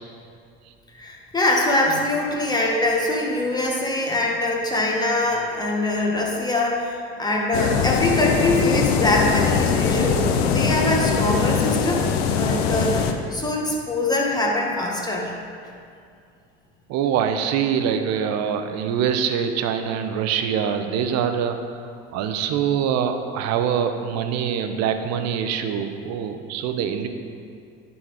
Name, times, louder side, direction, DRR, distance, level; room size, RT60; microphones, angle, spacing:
voice 1, 0.9-15.3, left 2 dB, 15° left, -1 dB, 1.6 m, -23 dB
sound 1, 7.5-13.1, left 6 dB, 80° left, 0.7 m, -21 dB
voice 2, 16.9-21.6 22.1-27.1, right 8 dB, 60° right, 7 dB, 0.8 m, -24 dB
10.5 x 4.2 x 4.9 m, 2.3 s
hypercardioid pair, 80°, 31 cm